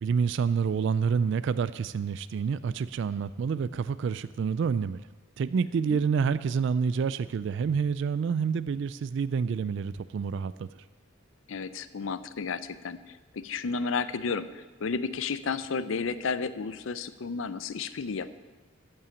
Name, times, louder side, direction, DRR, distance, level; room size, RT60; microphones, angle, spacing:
voice 1, 0.0-5.0 5.4-10.7, right 6 dB, 65° right, 15 dB, 0.3 m, -28 dB
voice 2, 11.5-18.3, left 5 dB, 75° left, 14 dB, 0.5 m, -32 dB
14.0 x 5.6 x 7.0 m, 1.3 s
head